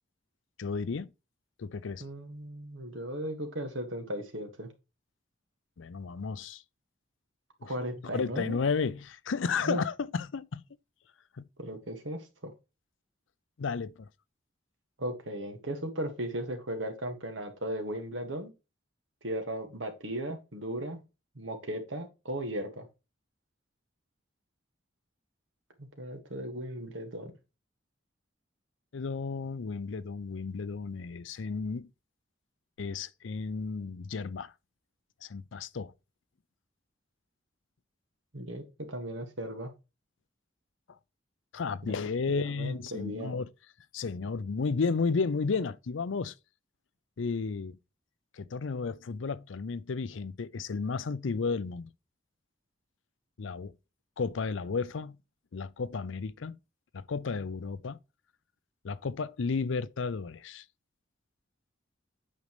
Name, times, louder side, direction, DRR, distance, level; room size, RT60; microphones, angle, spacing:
voice 1, 0.6-1.1 1.6-2.0 5.8-6.6 7.6-7.7 8.1-10.6 11.4-11.5 13.6-14.1 28.9-31.9 32.8-34.5 35.2-35.9 41.5-43.5 43.9-46.3 47.2-47.8 48.3-51.9 53.4-53.7 54.2-55.2 55.5-56.6 56.9-58.0 58.8-60.6, left 4 dB, 85° left, 0.5 m, -33 dB
voice 2, 2.0-4.7 7.6-8.6 9.6-9.8 11.6-12.5 15.0-18.5 19.2-21.0 21.4-22.9 25.8-27.3 38.3-39.7 41.8-42.0 42.3-43.4, right 1 dB, 90° right, 1.9 m, -36 dB
8.4 x 5.2 x 3.2 m
head